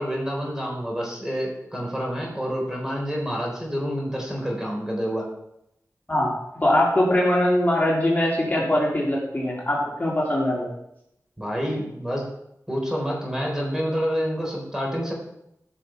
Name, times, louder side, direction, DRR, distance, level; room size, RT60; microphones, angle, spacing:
voice 1, 0.0-5.3 11.4-12.3 12.7-15.1, equal, 10° right, -1 dB, 3.8 m, -28 dB
voice 2, 6.6-10.7, left 1 dB, 30° left, -4 dB, 3.1 m, -22 dB
15.0 x 6.3 x 5.1 m, 0.80 s
wide cardioid pair, 85°, 6 cm